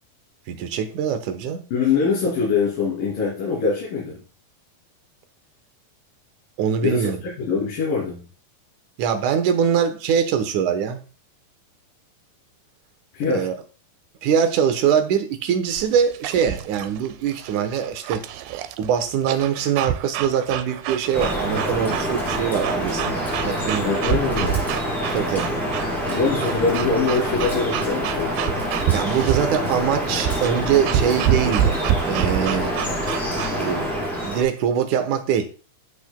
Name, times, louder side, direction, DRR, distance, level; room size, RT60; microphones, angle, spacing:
voice 1, 0.5-1.6 6.6-7.2 9.0-11.0 13.2-13.6 14.2-18.2 18.8-24.0 25.1-25.5 28.9-31.8 32.1-32.7 33.6-33.9 34.2-35.5, right 8 dB, 65° right, 8 dB, 2.2 m, -23 dB
voice 2, 1.7-4.2 6.8-8.2 13.1-13.5 23.8-24.7 26.1-28.4, left 5 dB, 65° left, -6 dB, 4.6 m, -23 dB
sound 1, 15.7-33.7, right 11 dB, 90° right, 2.5 m, -28 dB
Drip, 21.1-34.4, equal, ahead, 4.7 m, -26 dB
12.0 x 8.2 x 2.2 m, 0.35 s
omnidirectional pair, 4.3 m